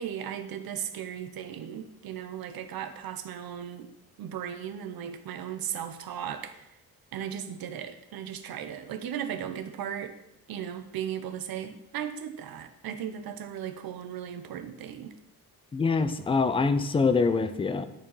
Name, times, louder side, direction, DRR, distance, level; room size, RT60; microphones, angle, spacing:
voice 1, 0.0-3.9 4.2-6.7 7.1-10.1 10.5-15.1, right 9 dB, 65° right, 10 dB, 0.8 m, -36 dB
voice 2, 15.7-17.9, left 4 dB, 15° left, 10 dB, 0.3 m, -24 dB
11.5 x 4.5 x 5.5 m, 0.87 s
wide cardioid pair, 175°, 38 cm